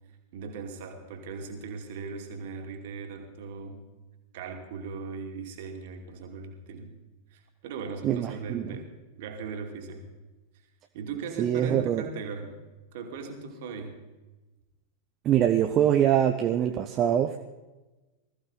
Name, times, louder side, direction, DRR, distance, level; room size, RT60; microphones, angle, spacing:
voice 1, 0.3-3.8 4.3-6.9 7.3-8.9 9.2-10.0 10.9-12.6 12.9-14.0, right 5 dB, 50° right, 4 dB, 2.5 m, -38 dB
voice 2, 8.0-8.8 11.4-12.0 15.2-17.4, right 10 dB, 30° right, 5 dB, 0.8 m, -24 dB
20.0 x 14.5 x 4.0 m, 1.1 s
figure-of-eight pair, 90°, 0 cm